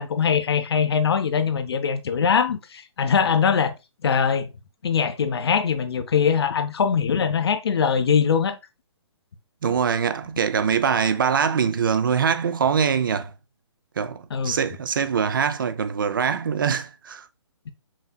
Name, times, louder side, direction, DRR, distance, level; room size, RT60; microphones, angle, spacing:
voice 1, 0.0-3.7 4.0-4.5 4.8-8.6 14.3-14.6 17.7-17.8, left 6 dB, 55° left, 0.6 m, -22 dB
voice 2, 9.6-13.3 14.0-17.3, right 7 dB, 45° right, 0.4 m, -23 dB
5.8 x 2.7 x 2.2 m
hypercardioid pair, 165°, 15 cm